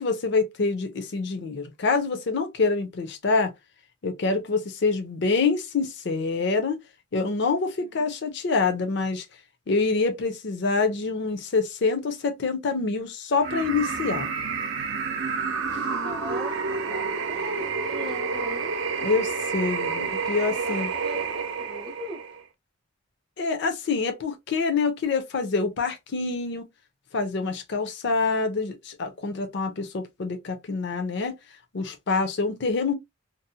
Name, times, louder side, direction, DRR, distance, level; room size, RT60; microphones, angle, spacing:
voice 1, 0.0-3.5 4.0-6.8 7.1-9.3 9.7-14.3 19.0-20.9 23.4-26.7 27.1-31.4 31.7-32.9, left 4 dB, 60° left, 0.5 m, -26 dB
sound 1, 13.4-22.4, right 5 dB, 70° right, 0.5 m, -29 dB
voice 2, 15.9-18.7 20.5-22.2, left 1 dB, 20° right, 0.6 m, -40 dB
2.6 x 2.0 x 2.6 m
head